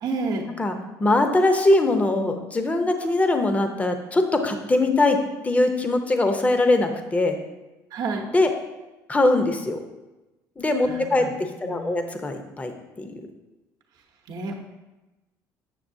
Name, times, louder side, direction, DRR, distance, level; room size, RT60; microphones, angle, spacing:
voice 1, 0.0-0.5 7.9-8.3 10.9-11.3 11.6-12.1 14.3-14.6, right 3 dB, 60° right, 1 dB, 0.8 m, -30 dB
voice 2, 1.0-7.4 8.3-8.5 9.1-9.8 10.6-13.1, left 2 dB, 20° left, 6 dB, 0.7 m, -22 dB
7.4 x 6.4 x 2.6 m, 1.1 s
cardioid pair, 100°, 8 cm